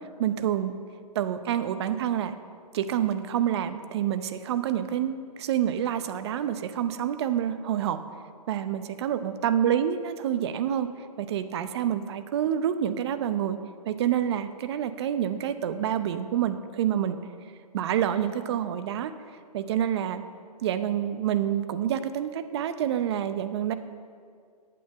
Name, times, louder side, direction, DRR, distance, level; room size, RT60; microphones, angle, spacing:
voice 1, 0.2-0.8 1.1-2.3 2.7-8.0 8.5-10.9 11.2-13.6 13.9-17.2 17.7-19.1 19.5-20.2 20.6-23.7, right 10 dB, 45° right, 11 dB, 0.6 m, -27 dB
8.8 x 8.6 x 6.6 m, 2.1 s
hypercardioid pair, 150°, 20 cm